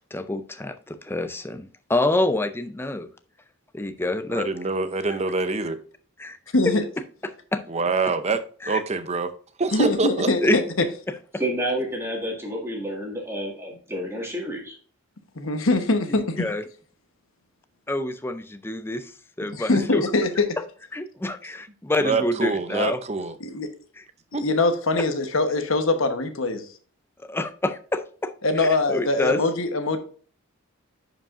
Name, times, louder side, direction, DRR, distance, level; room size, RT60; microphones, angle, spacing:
voice 1, 0.1-3.1 3.7-4.5 6.2-6.4 7.2-7.6 8.6-8.8 10.4-10.6 16.4-16.6 17.9-19.1 19.4-20.0 20.9-23.0 24.0-24.1 27.2-29.4, left 1 dB, 10° left, 9 dB, 0.4 m, -27 dB
voice 2, 4.3-5.8 7.7-9.3 9.6-10.3 22.0-23.4 24.3-24.4, right 3 dB, 30° right, 10 dB, 0.6 m, -25 dB
voice 3, 9.7-10.9 15.4-16.5 19.5-20.5 23.4-23.7 24.4-26.7 28.4-30.0, left 2 dB, 70° left, 7 dB, 1.1 m, -23 dB
voice 4, 11.4-14.8, right 1 dB, 10° right, -1 dB, 1.9 m, -29 dB
10.5 x 5.0 x 2.5 m, 0.43 s
head